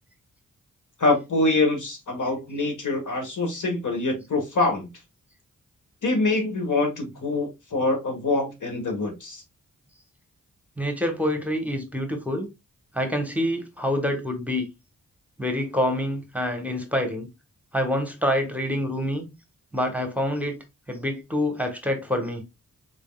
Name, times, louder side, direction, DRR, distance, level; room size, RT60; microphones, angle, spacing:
voice 1, 1.0-4.9 6.0-9.4, left 2 dB, 65° left, 1.4 m, -25 dB
voice 2, 10.8-12.5 12.9-14.7 15.4-17.3 17.7-19.3 19.7-20.6 20.9-22.4, left 1 dB, 5° right, 1.1 m, -26 dB
3.9 x 3.5 x 2.3 m
cardioid pair, 50°, 33 cm